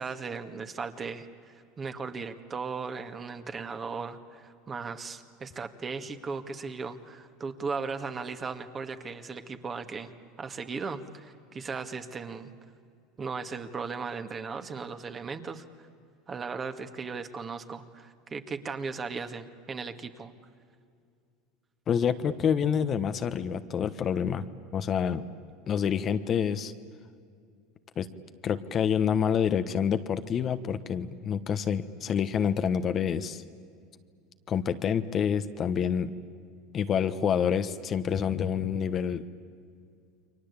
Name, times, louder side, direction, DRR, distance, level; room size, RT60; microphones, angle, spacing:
voice 1, 0.0-10.1 10.4-12.5 13.2-15.7 16.3-20.3, right 5 dB, 30° right, 8 dB, 2.0 m, -37 dB
voice 2, 21.9-24.4 24.7-25.2 25.7-26.7 28.0-28.1 28.4-33.4 34.5-36.1 36.7-39.2, left 8 dB, 40° left, 10 dB, 1.2 m, -27 dB
29.5 x 23.5 x 8.6 m, 2.3 s
supercardioid pair, 100°, 0 cm